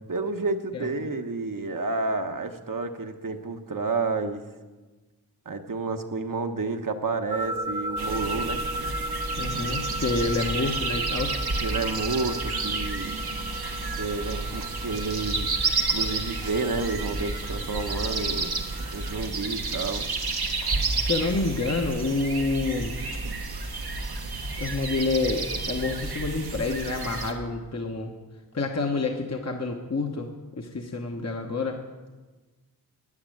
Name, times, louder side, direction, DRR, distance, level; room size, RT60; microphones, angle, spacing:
voice 1, 0.1-4.4 5.5-8.6 11.6-13.3 14.0-15.5 15.8-18.5 18.9-20.1, right 3 dB, 60° right, 6 dB, 1.1 m, -30 dB
sound 1, 7.3-19.2, right 1 dB, 15° right, 0.8 m, -36 dB
sound 2, 8.0-27.3, right 3 dB, 80° right, 1.3 m, -30 dB
voice 2, 9.4-11.3 21.0-23.0 24.6-28.1 28.5-30.3 30.6-31.8, left 3 dB, 45° left, 2 dB, 1.1 m, -28 dB
9.7 x 8.9 x 9.0 m, 1.3 s
wide cardioid pair, 55°, 38 cm